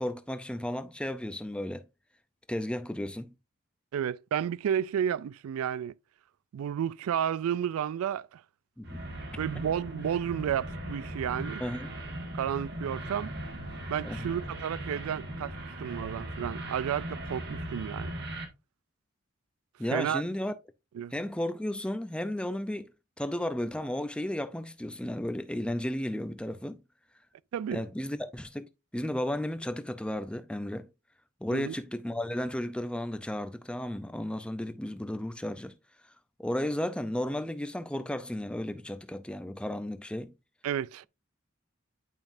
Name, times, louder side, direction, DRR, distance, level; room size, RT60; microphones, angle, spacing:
voice 1, 0.0-1.8 2.5-3.3 8.8-8.9 11.6-11.9 14.0-14.3 19.8-20.5 21.1-22.9 23.2-26.8 27.7-28.6 28.9-30.9 31.4-35.7 36.4-40.3, left 1 dB, 5° left, 0.5 m, -33 dB
voice 2, 3.9-5.9 6.5-8.4 9.4-11.6 12.3-13.3 13.9-18.1 19.9-20.2 20.9-21.1 27.5-27.8 31.5-31.8 40.6-41.1, right 9 dB, 85° right, 0.3 m, -32 dB
sound 1, 8.8-18.4, right 1 dB, 50° right, 1.5 m, -39 dB
9.2 x 5.3 x 2.6 m
head